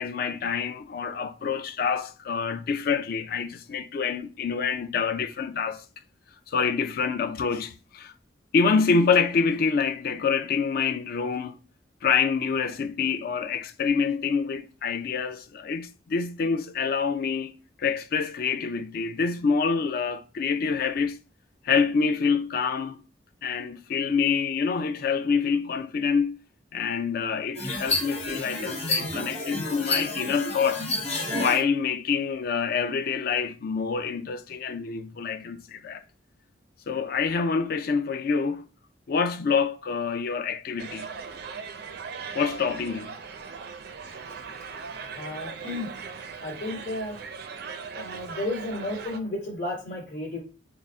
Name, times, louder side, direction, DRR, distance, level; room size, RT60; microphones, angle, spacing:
voice 1, 0.0-5.8 6.5-8.1 8.5-11.6 12.0-21.2 21.6-23.0 23.4-26.4 26.7-30.9 31.4-36.0 36.9-38.6 39.1-41.1 42.3-43.2, left 5 dB, 55° left, 0.4 m, -26 dB
sound 1, 27.5-31.6, left 2 dB, 35° left, 1.1 m, -29 dB
sound 2, 40.8-49.2, right 5 dB, 60° right, 0.4 m, -39 dB
voice 2, 45.2-45.9 46.4-47.1 47.9-50.4, left 2 dB, 70° left, 1.7 m, -33 dB
3.7 x 2.0 x 4.2 m
head